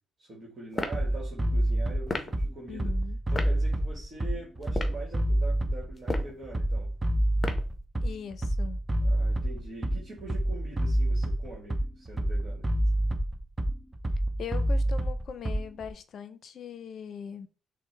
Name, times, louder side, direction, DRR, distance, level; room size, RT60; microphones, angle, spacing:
voice 1, 0.2-2.9 3.3-6.9 9.0-12.7, right 2 dB, 45° right, 1.4 m, -44 dB
sound 1, 0.7-1.0 2.1-2.3 3.3-3.5 4.6-5.0 6.0-6.4 7.4-7.7, left 2 dB, 25° left, 0.7 m, -33 dB
Bass drum, 0.9-15.9, right 1 dB, 20° right, 0.5 m, -28 dB
voice 2, 2.7-3.2 8.0-8.8 14.4-17.5, left 7 dB, 60° left, 0.5 m, -40 dB
6.0 x 2.1 x 3.3 m
cardioid pair, 90°, 0 cm